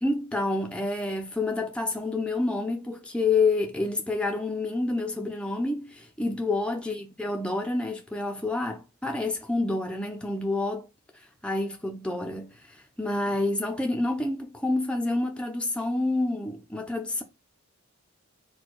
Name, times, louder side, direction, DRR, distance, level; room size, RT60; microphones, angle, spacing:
voice 1, 0.0-10.9 11.4-17.2, left 2 dB, 5° left, 0.6 m, -28 dB
4.4 x 2.3 x 4.5 m
head